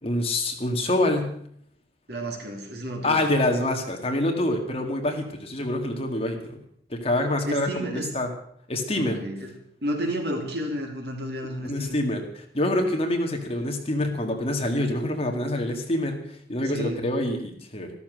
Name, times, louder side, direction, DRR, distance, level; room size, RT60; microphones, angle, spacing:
voice 1, 0.0-1.3 3.0-6.6 6.9-8.3 8.7-9.2 11.6-17.9, left 1 dB, 35° left, 3 dB, 2.2 m, -26 dB
voice 2, 2.1-3.2 7.4-8.1 8.9-9.5 9.8-12.0 16.7-17.1, right 1 dB, 65° right, 2 dB, 3.4 m, -31 dB
13.5 x 13.5 x 6.5 m, 0.65 s
head